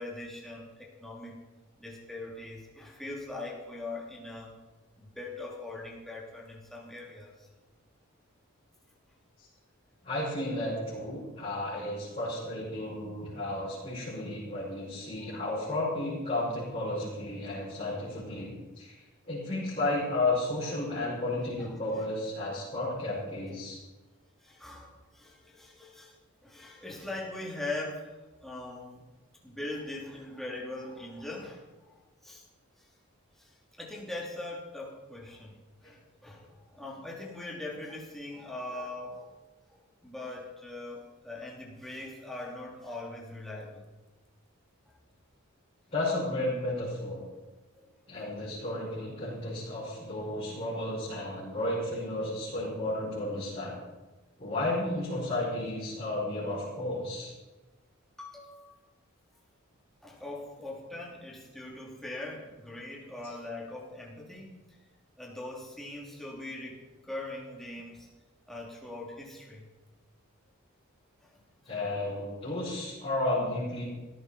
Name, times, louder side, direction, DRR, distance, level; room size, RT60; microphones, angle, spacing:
voice 1, 0.0-1.4 1.8-4.5 5.0-7.5 21.6-21.7 24.4-26.1 26.4-28.1 28.4-29.0 29.4-31.6 32.2-32.4 33.4-33.5 33.8-39.4 40.0-43.8 47.7-47.9 48.1-48.3 58.2-58.7 60.0-64.5 65.2-68.1 68.5-69.7, left 2 dB, ahead, -4 dB, 2.9 m, -41 dB
voice 2, 10.0-18.9 19.3-23.8 45.9-47.2 48.1-53.8 54.4-57.3 71.6-73.8, left 1 dB, 30° left, -10 dB, 5.6 m, -33 dB
17.0 x 13.5 x 4.3 m, 1.2 s
head